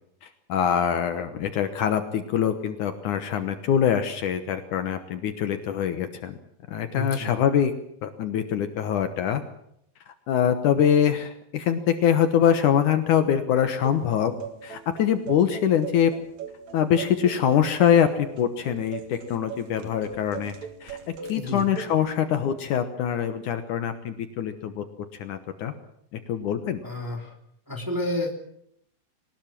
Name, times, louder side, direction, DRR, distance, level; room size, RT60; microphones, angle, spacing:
voice 1, 0.2-6.3 6.7-7.7 8.0-9.4 10.1-14.3 14.6-16.1 16.7-18.1 18.4-20.5 20.8-21.0 21.3-24.8 25.2-25.7 26.3-26.8, left 9 dB, 65° left, 8 dB, 2.4 m, -24 dB
voice 2, 6.9-7.3 21.3-21.7 26.8-27.3 27.7-28.3, left 1 dB, 5° right, 2 dB, 2.4 m, -30 dB
sound 1, 13.8-22.0, right 6 dB, 55° right, 3.0 m, -40 dB
21.0 x 19.5 x 7.5 m, 0.73 s
omnidirectional pair, 4.2 m